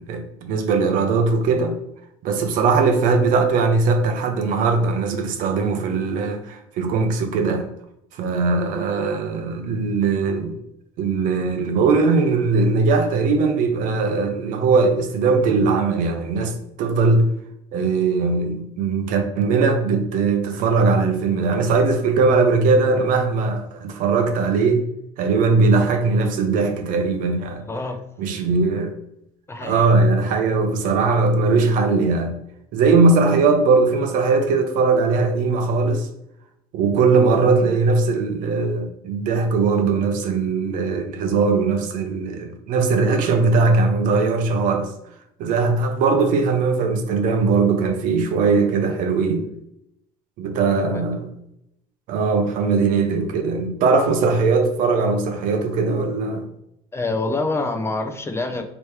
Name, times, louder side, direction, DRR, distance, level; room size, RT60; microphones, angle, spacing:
voice 1, 0.1-1.8 2.2-7.7 8.1-10.6 11.0-17.3 17.7-24.8 25.2-27.6 28.2-29.0 29.6-32.4 32.7-36.1 36.7-44.9 45.4-49.5 50.4-51.3 52.1-56.5, right 4 dB, 60° right, 0.7 m, -20 dB
voice 2, 27.7-28.0 29.5-29.9 50.7-51.0 56.9-58.6, left 2 dB, 15° left, 0.5 m, -26 dB
3.1 x 3.0 x 3.1 m
supercardioid pair, 85°, 15 cm